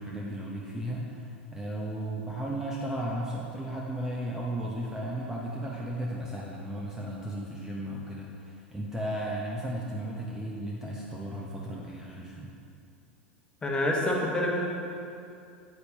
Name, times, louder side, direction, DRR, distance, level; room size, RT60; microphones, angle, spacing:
voice 1, 0.0-12.5, right 1 dB, 10° right, -4 dB, 0.8 m, -35 dB
voice 2, 13.6-14.7, left 1 dB, 15° left, -1 dB, 1.3 m, -27 dB
8.7 x 7.9 x 2.8 m, 2.5 s
figure-of-eight pair, 85°, 6 cm